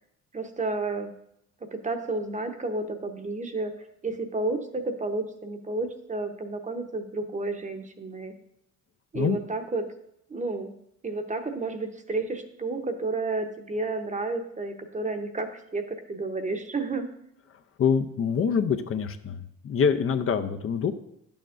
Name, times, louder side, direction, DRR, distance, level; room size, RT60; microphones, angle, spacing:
voice 1, 0.3-1.1 1.7-3.7 4.0-8.3 9.1-9.9 10.3-10.7 11.0-17.1, right 3 dB, 25° right, 7 dB, 0.8 m, -31 dB
voice 2, 17.8-20.9, left 6 dB, 45° left, 8 dB, 0.6 m, -25 dB
10.5 x 7.0 x 2.5 m, 0.77 s
cardioid pair, 90°, 30 cm